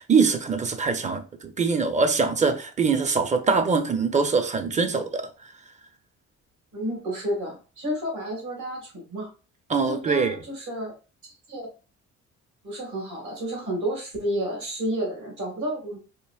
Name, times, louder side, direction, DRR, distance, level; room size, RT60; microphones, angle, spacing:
voice 1, 0.0-5.3 9.7-10.4, right 4 dB, 25° right, 0.6 m, -23 dB
voice 2, 6.7-9.3 9.8-10.9 11.2-11.7 12.6-16.0, right 1 dB, 70° right, 1.8 m, -31 dB
4.6 x 2.5 x 2.3 m
cardioid pair, 90°, 30 cm